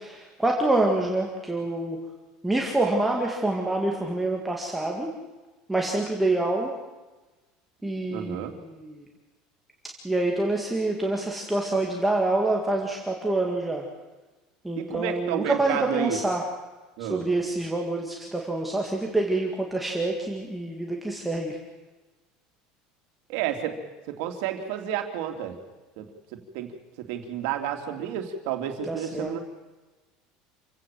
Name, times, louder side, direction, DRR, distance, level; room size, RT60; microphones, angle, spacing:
voice 1, 0.0-2.0 2.4-5.1 5.7-6.7 7.8-9.0 10.0-13.8 14.6-16.5 17.0-21.6 28.9-29.3, right 2 dB, 5° right, 0 dB, 2.0 m, -26 dB
voice 2, 8.1-8.5 14.8-16.2 17.0-17.3 23.3-23.8 24.1-25.6 26.0-26.1 26.3-26.7 27.0-29.4, right 10 dB, 60° right, 5 dB, 3.2 m, -31 dB
27.5 x 16.5 x 7.7 m, 1.2 s
cardioid pair, 175°, 2 cm